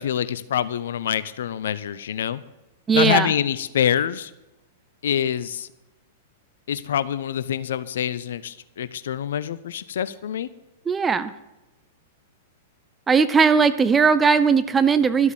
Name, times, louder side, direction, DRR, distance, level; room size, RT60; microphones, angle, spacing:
voice 1, 0.0-2.4 2.9-4.3 5.0-5.7 6.7-10.5, left 9 dB, 65° left, 16 dB, 0.6 m, -25 dB
voice 2, 2.9-3.3 10.9-11.3 13.1-15.3, right 5 dB, 15° right, 12 dB, 0.7 m, -18 dB
12.5 x 8.1 x 7.2 m, 0.97 s
figure-of-eight pair, 100°, 0 cm